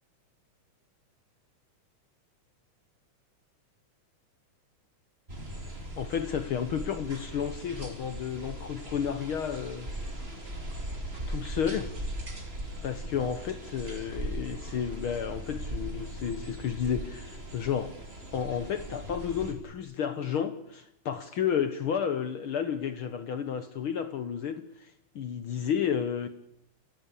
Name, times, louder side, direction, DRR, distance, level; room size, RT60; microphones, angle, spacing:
sound 1, 5.3-19.5, right 1 dB, 20° right, 3.0 m, -39 dB
voice 1, 6.0-9.9 11.3-11.9 12.8-17.9 18.3-26.3, left 8 dB, 65° left, 1.3 m, -32 dB
29.5 x 15.0 x 8.4 m
omnidirectional pair, 3.6 m